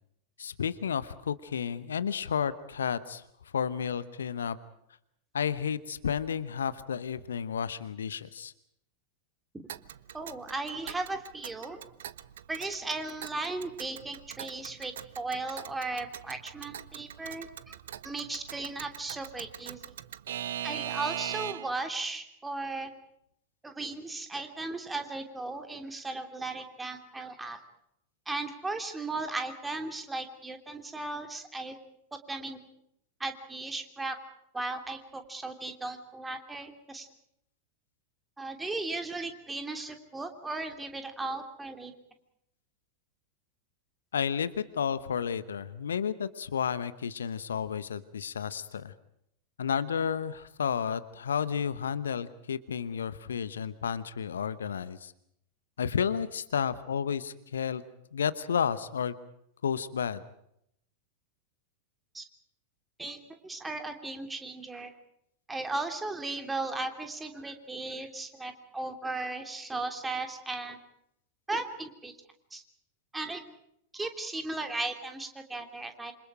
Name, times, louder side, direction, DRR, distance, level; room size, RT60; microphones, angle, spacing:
voice 1, 0.4-3.2 3.5-4.6 5.3-8.5 44.1-48.9 49.6-55.1 55.8-57.8 58.1-59.1 59.6-60.2, left 7 dB, 65° left, 15 dB, 1.0 m, -32 dB
Alarm / Clock, 9.7-21.8, right 11 dB, 60° right, 0.8 m, -41 dB
voice 2, 10.1-11.8 12.5-17.5 18.0-19.8 20.6-22.9 23.6-27.6 28.3-31.7 32.3-32.6 33.2-34.1 34.5-37.1 38.4-41.9 62.1-62.3 63.0-64.9 65.5-70.8 71.5-72.1 72.5-72.6 73.1-73.4 73.9-76.1, right 2 dB, 10° right, 6 dB, 3.1 m, -36 dB
28.0 x 26.5 x 5.0 m, 0.74 s
figure-of-eight pair, 90°, 0 cm